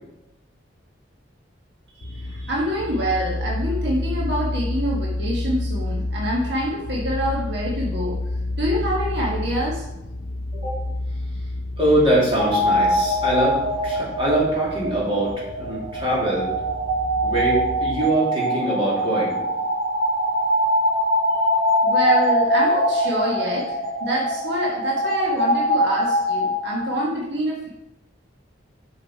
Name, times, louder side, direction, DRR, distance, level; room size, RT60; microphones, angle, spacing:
voice 1, 1.9-8.2 8.6-9.9 21.8-27.7, equal, 60° right, -4 dB, 1.5 m, -26 dB
sound 1, 2.0-18.0, left 2 dB, 60° left, 0.8 m, -30 dB
voice 2, 11.8-13.6 13.8-16.5 17.2-19.4, right 1 dB, 30° right, -6 dB, 3.0 m, -23 dB
sound 2, 12.4-27.1, equal, 85° right, 2.1 m, -23 dB
7.9 x 6.5 x 4.6 m, 0.93 s
head